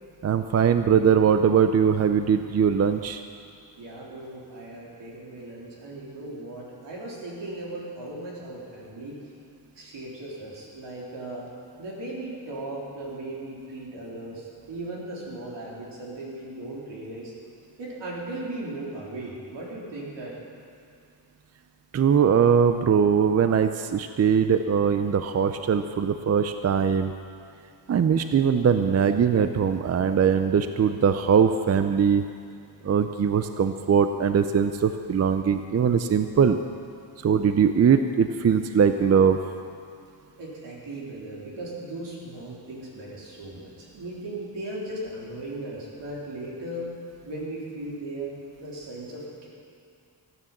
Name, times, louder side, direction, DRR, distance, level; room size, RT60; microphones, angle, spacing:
voice 1, 0.2-3.2 21.9-27.1 27.9-32.2 32.8-36.6 37.2-39.4, right 7 dB, 40° right, 9 dB, 0.5 m, -21 dB
voice 2, 3.8-9.2 9.8-11.5 11.8-17.3 17.8-20.3 40.3-46.9 47.2-48.3 48.6-49.5, right 1 dB, 85° right, -4 dB, 3.6 m, -37 dB
15.5 x 9.4 x 7.3 m, 2.5 s
wide cardioid pair, 135°, 42 cm